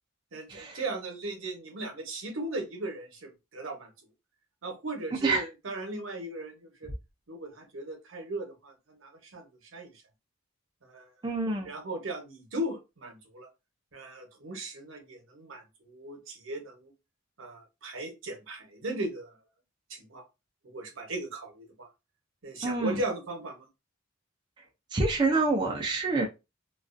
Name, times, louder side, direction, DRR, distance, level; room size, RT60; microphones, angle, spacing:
voice 1, 0.3-3.9 4.6-6.9 7.3-8.7 9.0-9.9 10.8-11.1 11.6-13.5 13.9-16.9 17.4-19.4 19.9-20.2 20.6-21.9 22.4-23.7, right 2 dB, 70° right, 4 dB, 0.8 m, -37 dB
voice 2, 11.2-11.7 22.6-23.0 24.9-26.3, right 3 dB, 20° right, 0 dB, 0.4 m, -27 dB
2.3 x 2.3 x 2.4 m, 0.25 s
head